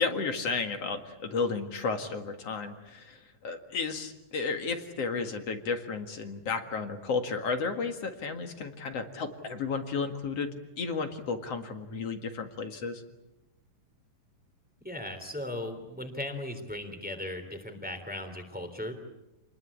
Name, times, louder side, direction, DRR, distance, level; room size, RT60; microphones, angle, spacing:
voice 1, 0.0-10.5 10.8-13.0, left 4 dB, 55° left, 6 dB, 2.7 m, -33 dB
voice 2, 14.8-18.9, left 1 dB, 5° right, 6 dB, 3.0 m, -37 dB
29.0 x 21.0 x 8.6 m, 0.95 s
omnidirectional pair, 3.7 m